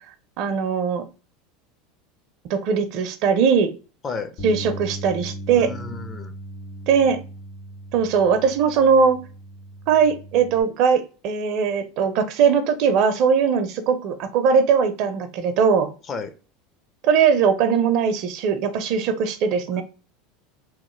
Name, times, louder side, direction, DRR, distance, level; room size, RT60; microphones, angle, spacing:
voice 1, 0.4-1.0 2.5-3.7 4.4-5.7 6.9-7.2 7.9-9.2 9.9-15.9 17.0-19.8, right 6 dB, 60° right, 9 dB, 0.5 m, -20 dB
Bass guitar, 4.4-10.6, right 1 dB, 55° left, 1.6 m, -37 dB
voice 2, 5.6-6.3 16.1-16.3 19.7-19.8, left 4 dB, 35° left, 8 dB, 0.5 m, -32 dB
3.0 x 2.1 x 3.1 m, 0.35 s
hypercardioid pair, 90°, 0 cm